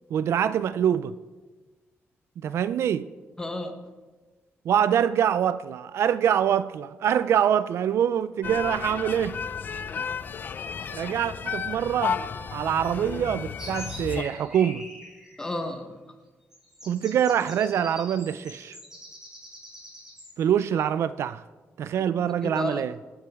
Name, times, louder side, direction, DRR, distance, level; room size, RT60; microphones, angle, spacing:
voice 1, 0.1-1.2 2.4-3.1 4.7-9.4 10.0-10.1 10.9-12.2 12.5-14.9 16.9-18.8 20.4-21.4 21.8-22.9, right 9 dB, 70° right, 0.4 m, -25 dB
voice 2, 3.4-3.9 15.4-16.0 22.0-22.8, left 1 dB, 15° left, 1.1 m, -33 dB
sound 1, 8.4-14.2, left 6 dB, 40° left, 0.4 m, -33 dB
sound 2, 13.6-15.5 16.5-20.9, equal, 10° right, 4.0 m, -44 dB
24.5 x 9.8 x 3.6 m
wide cardioid pair, 165°, 5 cm